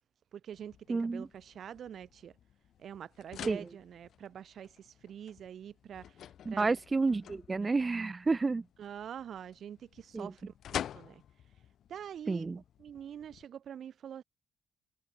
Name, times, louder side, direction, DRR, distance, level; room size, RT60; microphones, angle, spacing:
voice 1, 0.3-2.4 2.8-6.2 6.5-6.7 7.6-7.7 8.8-10.5 10.9-11.2 11.9-12.5 12.8-14.2, right 9 dB, 60° right, 1.1 m, -45 dB
sound 1, 0.5-13.5, left 10 dB, 65° left, 1.3 m, -48 dB
voice 2, 0.9-1.3 3.5-3.6 6.5-8.6 10.1-10.3 12.3-12.6, right 3 dB, 25° right, 0.5 m, -30 dB
cardioid pair, 90°, 0 cm